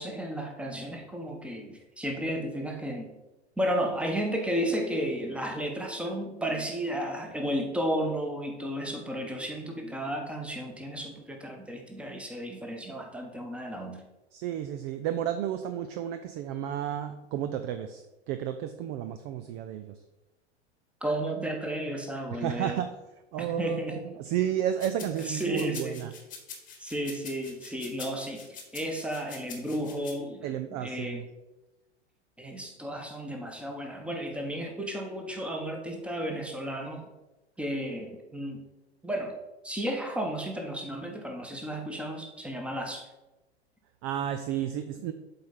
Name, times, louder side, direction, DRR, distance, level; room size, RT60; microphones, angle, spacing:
voice 1, 0.0-3.1 3.6-14.1 21.0-22.8 23.4-24.0 25.2-26.0 26.8-30.5 30.8-31.2 32.4-37.1 37.6-38.6 39.0-39.4 39.6-43.1, equal, 5° right, 3 dB, 1.1 m, -33 dB
voice 2, 14.3-20.0 22.3-22.9 23.3-26.1 30.4-31.2 44.0-45.1, right 10 dB, 30° right, 9 dB, 0.4 m, -32 dB
sound 1, 24.8-30.1, left 6 dB, 25° left, 1.3 m, -45 dB
7.7 x 4.2 x 5.0 m, 1.0 s
figure-of-eight pair, 90°, 34 cm